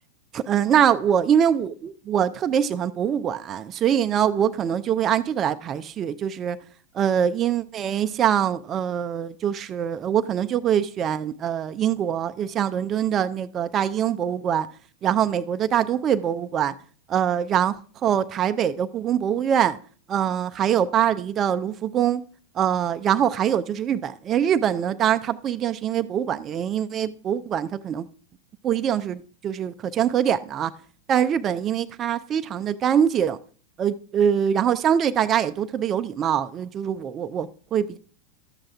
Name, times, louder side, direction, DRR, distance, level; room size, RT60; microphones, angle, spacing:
voice 1, 0.3-6.6 6.9-14.7 15.0-16.7 17.1-19.8 20.1-22.2 22.6-28.1 28.6-30.7 31.1-33.4 33.8-38.0, right 9 dB, 30° right, 0.4 m, -23 dB
12.0 x 7.5 x 3.4 m
figure-of-eight pair, 90°, 0 cm